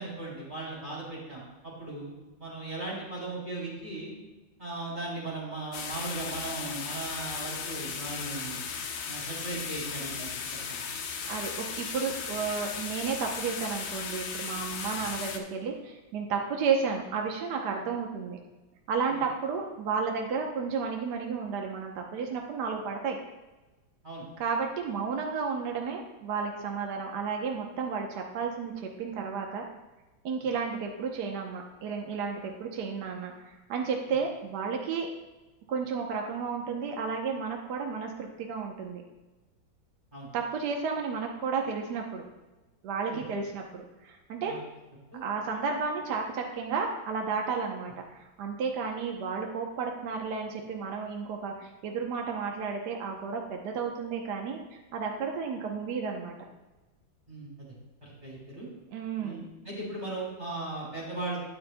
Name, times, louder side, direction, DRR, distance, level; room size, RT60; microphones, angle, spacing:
voice 1, 0.0-2.1 2.4-4.1 4.6-8.6 9.1-10.8 19.1-19.2 24.0-24.2 40.1-40.3 43.1-43.2 44.4-44.6 45.1-45.2 57.3-57.7 58.0-58.7 59.2-61.4, right 2 dB, 20° right, -6 dB, 3.1 m, -37 dB
sound 1, 5.7-15.4, left 6 dB, 70° left, 1.5 m, -36 dB
voice 2, 11.3-18.4 18.9-23.2 24.4-29.6 30.2-35.1 35.7-39.0 40.3-42.2 42.8-44.5 45.2-56.4 58.9-59.5, right 5 dB, 60° right, 1 dB, 1.3 m, -32 dB
12.0 x 9.6 x 2.2 m, 1.1 s
omnidirectional pair, 2.3 m